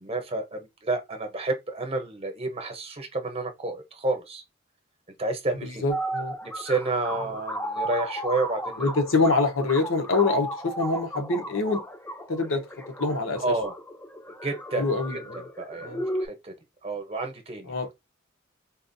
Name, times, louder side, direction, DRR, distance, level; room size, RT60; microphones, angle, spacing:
voice 1, 0.0-4.4 5.2-5.8 6.4-8.9 13.4-13.7 14.4-14.8 15.1-15.2 15.6-15.9 16.2-16.5 16.8-17.7, right 2 dB, 30° right, 0.8 m, -30 dB
voice 2, 5.6-6.3 8.8-11.8 12.3-12.6 13.0-13.5 14.7-15.4 15.8-16.0 17.7-17.9, left 3 dB, 80° left, 0.9 m, -25 dB
sound 1, 5.9-16.3, right 1 dB, 10° left, 0.5 m, -34 dB
4.0 x 2.4 x 2.6 m
head